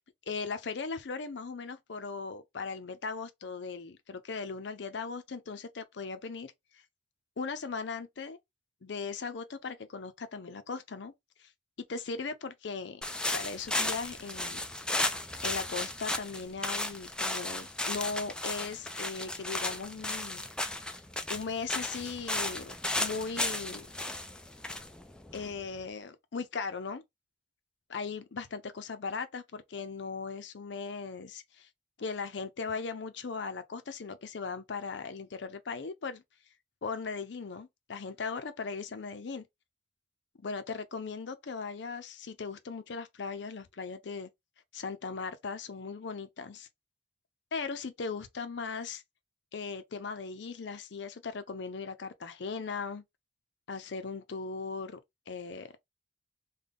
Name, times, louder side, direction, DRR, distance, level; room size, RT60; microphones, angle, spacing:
voice 1, 0.3-6.5 7.4-8.4 8.8-11.1 11.4-11.5 11.9-13.0 13.3-14.6 15.4-20.4 21.3-23.9 25.3-27.0 27.9-31.7 32.0-36.2 36.8-39.4 40.4-44.3 44.7-46.7 47.5-49.0 49.5-53.0 53.7-55.0 55.3-55.7, left 4 dB, 65° left, 0.5 m, -38 dB
sound 1, 13.0-25.8, left 2 dB, 5° left, 0.3 m, -34 dB
3.6 x 2.2 x 3.4 m
head